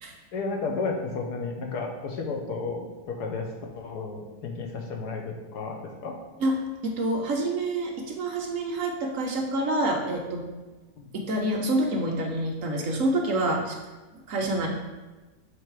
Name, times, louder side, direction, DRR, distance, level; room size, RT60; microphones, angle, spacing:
voice 1, 0.3-3.5 3.7-6.2 11.0-11.1, left 4 dB, 90° left, 1 dB, 1.5 m, -32 dB
voice 2, 6.8-10.5 11.1-13.8 14.3-14.7, right 1 dB, 60° right, 1 dB, 1.1 m, -27 dB
6.4 x 3.4 x 4.6 m, 1.2 s
omnidirectional pair, 1.7 m